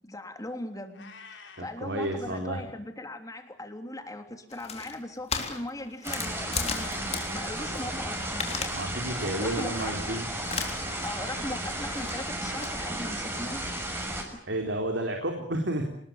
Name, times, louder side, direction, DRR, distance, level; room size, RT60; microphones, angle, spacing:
voice 1, 0.0-8.5 9.4-10.2 11.0-13.8 14.3-14.4, left 1 dB, 20° left, 6 dB, 3.4 m, -39 dB
Meow, 0.9-1.8, left 5 dB, 70° left, 5.3 m, -48 dB
voice 2, 1.6-2.6 7.7-7.8 8.7-10.3 14.4-15.8, right 1 dB, 70° right, 3 dB, 4.0 m, -31 dB
sound 1, 4.5-7.8 8.1-8.8 9.1-9.4 9.8-10.0 10.4-11.1 11.4-12.7, left 5 dB, 35° left, 3.6 m, -36 dB
sound 2, 6.0-14.2, right 1 dB, 15° right, 6.2 m, -34 dB
27.0 x 20.5 x 8.8 m, 0.63 s
head